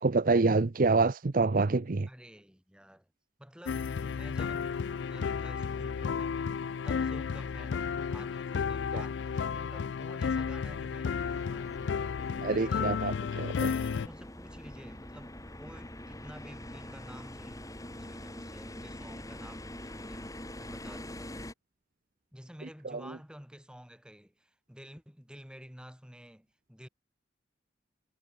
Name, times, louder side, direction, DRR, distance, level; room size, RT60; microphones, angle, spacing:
voice 1, 0.0-2.1 12.4-13.7, right 3 dB, 45° right, 0.6 m, -26 dB
voice 2, 2.1-3.1 3.4-6.4 6.8-11.7 12.5-13.0 13.9-20.3 20.6-21.4 22.3-26.9, equal, 5° right, 6.0 m, -51 dB
sound 1, 3.7-14.1, left 6 dB, 65° left, 0.4 m, -33 dB
sound 2, 11.2-21.5, left 1 dB, 15° left, 5.6 m, -44 dB
head